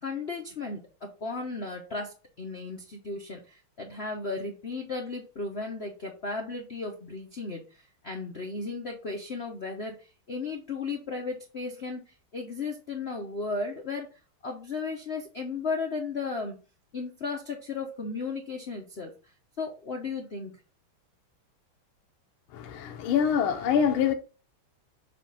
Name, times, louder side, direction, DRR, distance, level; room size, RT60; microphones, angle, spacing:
voice 1, 0.0-7.6 8.0-12.0 12.3-14.1 14.4-16.6 16.9-19.1 19.6-20.6, left 4 dB, 55° left, 0.7 m, -35 dB
voice 2, 22.5-24.1, left 8 dB, 80° left, 1.6 m, -25 dB
7.4 x 2.5 x 5.3 m
omnidirectional pair, 2.3 m